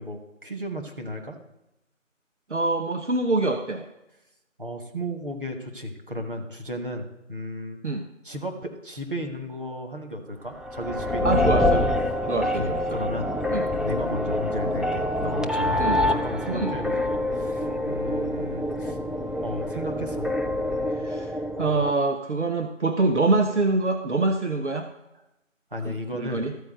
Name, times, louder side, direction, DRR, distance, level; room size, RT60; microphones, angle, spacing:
voice 1, 0.0-1.4 4.6-7.8 8.2-11.5 12.5-13.3 13.8-17.0 17.3-19.0 19.4-20.3 25.7-26.4, equal, 40° right, 3 dB, 1.3 m, -34 dB
voice 2, 2.5-3.9 7.8-8.1 11.2-11.9 12.3-13.0 13.5-13.7 15.8-16.0 16.5-16.7 20.9-21.3 21.6-24.9 25.8-26.5, right 3 dB, 65° right, 5 dB, 0.9 m, -25 dB
sound 1, 10.6-21.9, left 1 dB, ahead, 0.3 m, -26 dB
13.0 x 4.6 x 7.5 m, 0.92 s
figure-of-eight pair, 170°, 39 cm